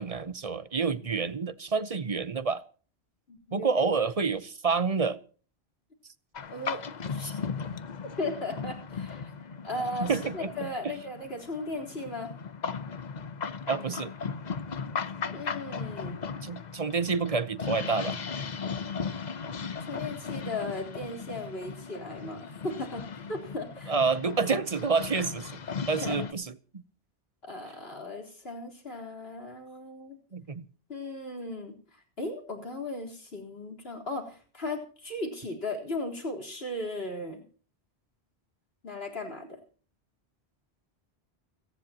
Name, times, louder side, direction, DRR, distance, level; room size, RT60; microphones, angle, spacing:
voice 1, 0.0-2.6 3.5-5.2 10.0-10.9 13.7-14.1 16.4-18.2 23.9-25.6 25.9-26.8 30.3-30.6, right 5 dB, 40° right, 0.8 m, -28 dB
voice 2, 3.3-3.7 6.5-6.8 7.1-7.3 8.2-9.3 9.6-12.3 15.3-16.2 19.8-23.9 26.0-26.1 27.4-30.2 30.9-31.7 32.2-37.4 38.8-39.5, left 2 dB, 70° left, 4.1 m, -36 dB
sound 1, 6.3-26.3, left 5 dB, 45° left, 0.9 m, -37 dB
29.0 x 10.5 x 2.9 m
omnidirectional pair, 1.1 m